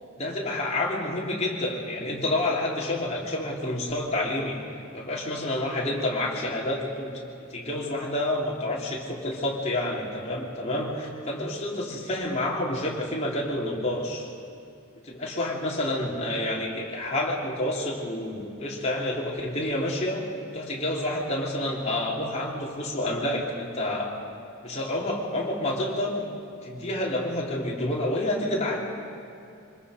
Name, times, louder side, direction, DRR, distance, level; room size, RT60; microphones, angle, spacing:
voice 1, 0.2-4.6 4.9-7.1 7.4-14.3 15.0-20.2 20.5-24.2 24.6-26.3 26.6-28.8, left 1 dB, 30° left, -4 dB, 3.6 m, -29 dB
26.5 x 21.0 x 5.2 m, 2.7 s
head